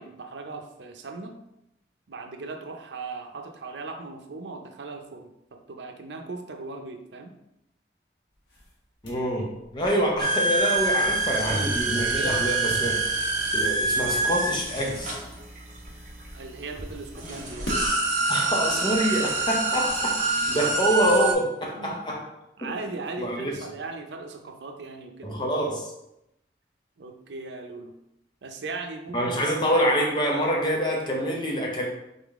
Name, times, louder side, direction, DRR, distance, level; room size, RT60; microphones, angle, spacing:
voice 1, 0.0-1.4 2.1-7.3 16.3-17.8 20.6-20.7 21.8-22.0 22.6-25.4 27.0-28.0 28.4-30.1, right 3 dB, 90° right, 5 dB, 0.6 m, -38 dB
sound 1, 8.3-21.1, equal, 90° left, 1.3 m, -43 dB
voice 2, 9.0-13.1 13.5-15.2 18.3-22.2 22.6-22.7 23.2-23.5 25.2-25.9 29.1-31.9, equal, 25° left, -1 dB, 0.8 m, -26 dB
sound 2, 10.2-15.9 16.8-16.9 17.2-21.3, right 3 dB, 45° right, 0.9 m, -26 dB
sound 3, 11.2-17.5, right 1 dB, 15° right, 0.5 m, -39 dB
3.9 x 3.7 x 3.5 m, 0.84 s
head